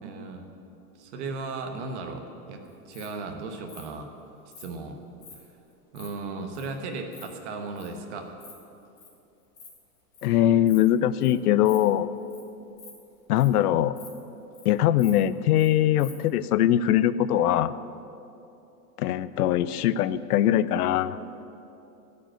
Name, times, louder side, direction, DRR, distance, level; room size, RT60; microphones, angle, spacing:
voice 1, 0.0-0.5 1.0-2.6 2.9-4.1 4.6-5.0 5.9-8.4, right 3 dB, 45° right, 5 dB, 1.3 m, -36 dB
Insect, 2.6-3.1 3.7-3.8 4.5-4.7 5.2-5.3 5.7-6.1 6.5-6.7 6.9-7.2 7.8-7.9 8.2-8.5 8.8-9.1 9.4-9.7 9.9-10.3 10.7-10.9 11.2-11.3 11.6-11.8 12.2-12.4 12.7-13.6 13.9-14.1 14.4-14.7 15.0-15.7 16.0-16.1, left 5 dB, 5° left, 0.4 m, -47 dB
voice 2, 10.2-12.1 13.3-13.9 14.6-17.7 19.0-21.2, left 12 dB, 70° left, 16 dB, 0.6 m, -22 dB
13.0 x 5.4 x 8.9 m, 2.8 s
supercardioid pair, 165°, 47 cm